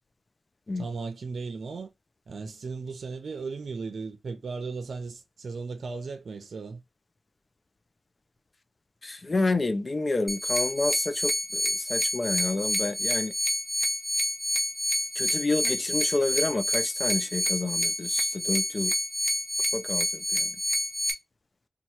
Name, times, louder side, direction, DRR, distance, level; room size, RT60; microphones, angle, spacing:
voice 1, 0.8-1.9 2.3-6.8, right 4 dB, 75° right, 0.7 m, -36 dB
voice 2, 9.0-13.3 15.2-18.9 19.7-20.6, left 2 dB, 35° left, 0.5 m, -29 dB
sound 1, 10.3-21.1, equal, 5° left, 1.0 m, -28 dB
3.1 x 2.4 x 4.2 m
wide cardioid pair, 105°, 0 cm